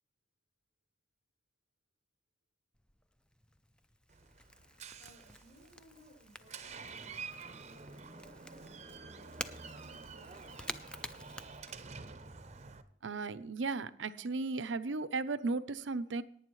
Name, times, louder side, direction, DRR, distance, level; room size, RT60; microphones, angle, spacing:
Crackle / Crack, 2.7-12.3, left 1 dB, 5° left, 0.4 m, -50 dB
Door, 4.1-12.8, right 4 dB, 35° right, 0.7 m, -49 dB
voice 1, 5.0-10.9, right 1 dB, 75° left, -8 dB, 5.8 m, -62 dB
voice 2, 13.0-16.2, right 3 dB, 80° right, 13 dB, 0.7 m, -35 dB
18.0 x 9.4 x 3.1 m, 0.66 s
head